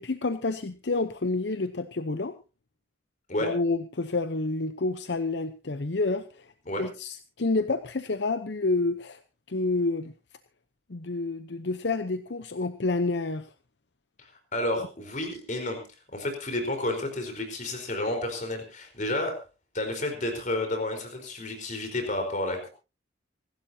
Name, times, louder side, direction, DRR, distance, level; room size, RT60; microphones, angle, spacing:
voice 1, 0.0-2.3 3.4-6.5 6.8-9.2 9.5-10.1 10.9-13.5, left 3 dB, 65° left, 0.8 m, -29 dB
voice 2, 14.2-15.8 16.1-19.4 19.7-22.7, left 1 dB, 40° left, 4.4 m, -31 dB
26.0 x 12.5 x 2.8 m
head